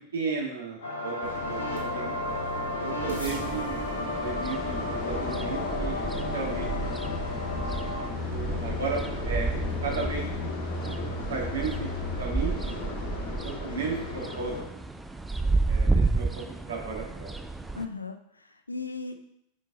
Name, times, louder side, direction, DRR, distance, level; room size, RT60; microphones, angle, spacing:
voice 1, 0.1-2.1 2.8-3.8 4.2-7.0 8.3-10.2 11.3-12.8 13.4-14.8 15.7-17.4, right 4 dB, 65° right, -2 dB, 1.9 m, -35 dB
sound 1, 0.8-8.1, left 2 dB, 65° left, 1.5 m, -33 dB
sound 2, 1.2-14.6, left 3 dB, 45° left, 1.6 m, -35 dB
sound 3, 3.0-17.9, right 3 dB, 5° right, 0.4 m, -32 dB
voice 2, 17.7-19.1, left 4 dB, 80° left, 7 dB, 0.6 m, -37 dB
6.4 x 5.1 x 3.8 m, 0.76 s
figure-of-eight pair, 90°, 0 cm